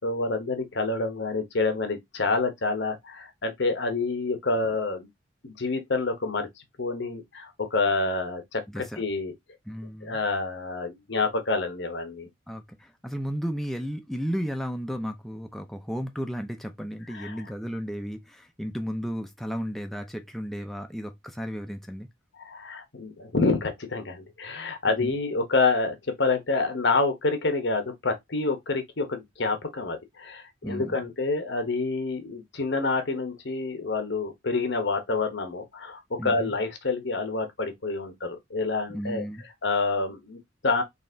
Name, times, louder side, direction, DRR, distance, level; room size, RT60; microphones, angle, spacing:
voice 1, 0.0-5.1 5.4-6.5 6.8-8.6 9.0-9.3 10.0-12.3 17.1-17.4 22.4-39.2 39.6-40.8, left 3 dB, 65° left, 1.0 m, -28 dB
voice 2, 8.7-9.0 9.7-10.2 12.5-22.1 24.9-25.1 30.6-31.0 36.2-36.5 38.9-39.4, equal, ahead, 0.5 m, -34 dB
4.0 x 2.4 x 3.8 m
head